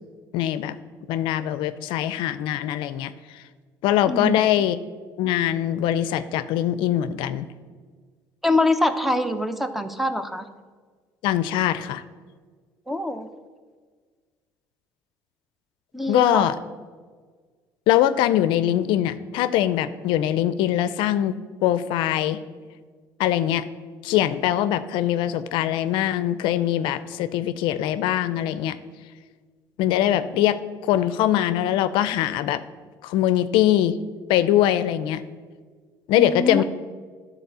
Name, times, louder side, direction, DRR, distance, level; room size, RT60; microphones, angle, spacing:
voice 1, 0.3-0.8 1.1-3.4 3.8-4.8 5.2-7.5 11.2-12.0 16.1-16.6 17.9-21.3 21.6-22.4 23.2-23.7 24.0-28.8 29.8-32.6 33.0-34.0 34.3-35.2 36.1-36.6, left 12 dB, 75° left, 13 dB, 0.4 m, -22 dB
voice 2, 4.1-4.4 8.4-10.5 12.9-13.3 15.9-16.5 36.2-36.6, left 1 dB, ahead, 9 dB, 0.7 m, -24 dB
11.5 x 4.2 x 6.7 m, 1.5 s
supercardioid pair, 90°, 8 cm